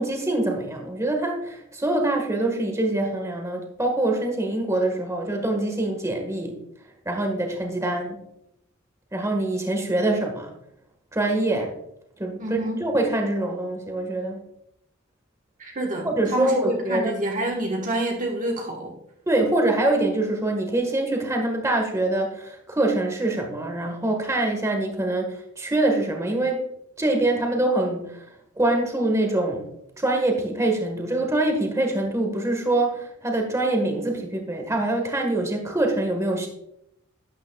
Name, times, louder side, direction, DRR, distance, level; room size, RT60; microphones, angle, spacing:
voice 1, 0.0-6.6 7.0-8.2 9.1-10.5 11.1-11.7 12.2-14.5 16.0-17.1 19.3-26.6 27.0-28.2 28.6-29.7 30.0-36.5, right 2 dB, 15° right, 3 dB, 1.5 m, -24 dB
voice 2, 12.4-12.8 15.6-19.0, right 1 dB, 40° right, 0 dB, 1.3 m, -28 dB
12.0 x 9.2 x 2.3 m, 0.78 s
head